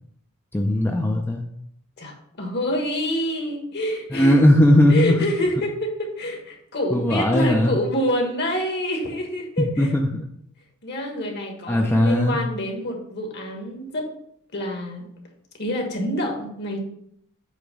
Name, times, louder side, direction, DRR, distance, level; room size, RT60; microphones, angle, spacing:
voice 1, 0.5-1.4 4.1-5.2 6.9-7.8 9.6-10.2 11.7-12.4, left 1 dB, 10° left, 1 dB, 0.5 m, -18 dB
voice 2, 2.0-4.5 4.9-9.9 10.8-14.1 14.5-15.1 15.6-16.8, equal, 50° left, 2 dB, 1.5 m, -27 dB
8.1 x 2.9 x 5.2 m, 0.71 s
head